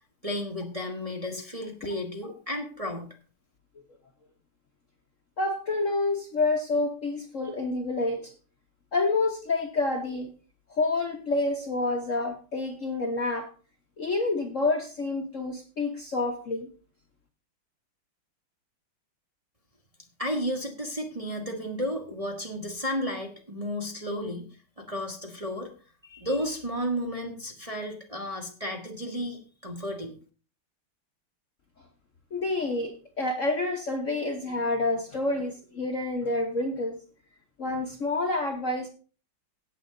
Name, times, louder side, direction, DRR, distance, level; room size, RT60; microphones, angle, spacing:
voice 1, 0.2-3.1 20.2-24.4 24.8-25.7 26.0-30.2, equal, 20° right, 1 dB, 1.4 m, -33 dB
voice 2, 5.4-8.3 8.9-10.3 10.7-13.5 14.0-16.7 32.3-37.0 37.6-38.9, left 2 dB, 45° left, 2 dB, 1.3 m, -28 dB
17.0 x 7.2 x 3.9 m, 0.38 s
omnidirectional pair, 2.4 m